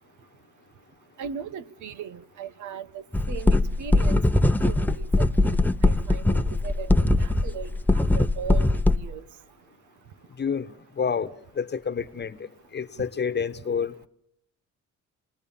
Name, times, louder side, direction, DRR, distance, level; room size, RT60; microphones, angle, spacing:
voice 1, 1.2-4.2 4.6-5.6 5.8-6.9 7.2-7.7 7.9-9.2, right 8 dB, 75° right, 1.1 m, -38 dB
sound 1, 3.1-9.0, left 2 dB, 5° left, 0.8 m, -21 dB
voice 2, 10.4-11.3 11.6-12.4 12.7-13.9, left 6 dB, 35° left, 1.2 m, -28 dB
29.0 x 20.0 x 7.2 m
cardioid pair, 90°, 30 cm